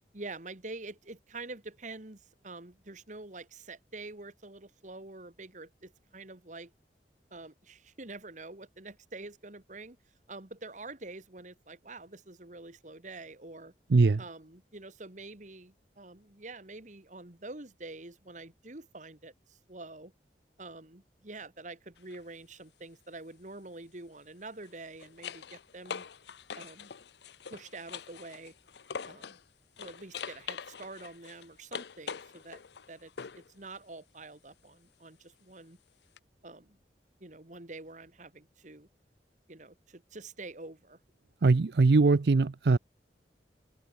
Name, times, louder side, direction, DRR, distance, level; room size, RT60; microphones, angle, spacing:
voice 1, 0.1-6.7 7.3-10.0 10.3-13.7 14.2-20.1 20.6-26.1 26.6-26.9 27.5-28.5 29.1-29.4 29.8-35.8 36.4-36.8 37.2-38.9 39.5-41.0, right 2 dB, 45° right, 2.1 m, -46 dB
voice 2, 13.9-14.2 41.4-42.8, right 3 dB, 65° right, 0.5 m, -22 dB
sound 1, 22.0-22.2 24.5-29.4 29.8-33.5 36.2-36.3, left 6 dB, 75° left, 0.6 m, -43 dB
head